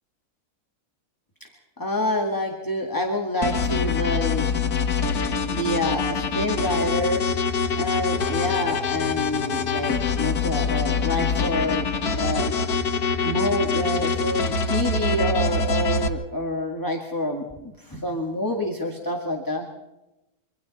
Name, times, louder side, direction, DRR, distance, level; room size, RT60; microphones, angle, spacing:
voice 1, 1.8-4.5 5.5-7.2 7.8-12.6 13.2-19.7, left 1 dB, 15° left, 1 dB, 1.9 m, -27 dB
sound 1, 3.4-16.1, left 4 dB, 80° left, 1.8 m, -25 dB
26.5 x 24.0 x 4.2 m, 0.96 s
omnidirectional pair, 1.6 m